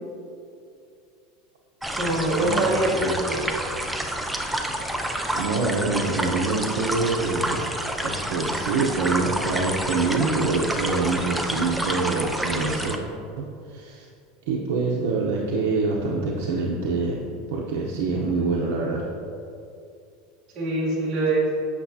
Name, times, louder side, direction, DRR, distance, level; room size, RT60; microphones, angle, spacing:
sound 1, 1.8-13.0, right 1 dB, 5° right, 0.4 m, -29 dB
voice 1, 2.0-3.4 20.5-21.5, right 2 dB, 30° right, -7 dB, 1.3 m, -24 dB
voice 2, 5.3-7.6 8.0-13.0 13.4-14.1 14.5-17.2 17.5-19.1, right 3 dB, 75° right, -3 dB, 0.8 m, -25 dB
8.3 x 6.2 x 2.8 m, 2.5 s
supercardioid pair, 160°, 0 cm